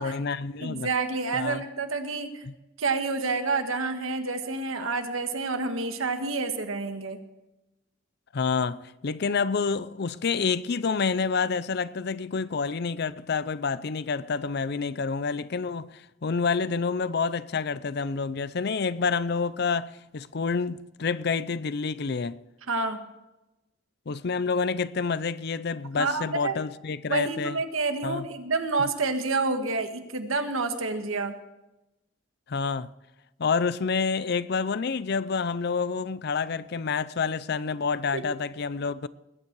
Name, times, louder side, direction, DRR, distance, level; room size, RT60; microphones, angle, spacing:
voice 1, 0.0-0.9 1.3-1.6 2.5-2.6 8.3-22.4 24.1-27.6 28.0-28.3 32.5-32.9 33.4-39.1, left 5 dB, 50° left, 0.5 m, -28 dB
voice 2, 0.6-2.3 2.8-7.2 22.7-23.0 25.9-26.6 27.1-31.4 38.1-38.2, right 3 dB, 85° right, 1.6 m, -28 dB
20.5 x 9.2 x 4.7 m
head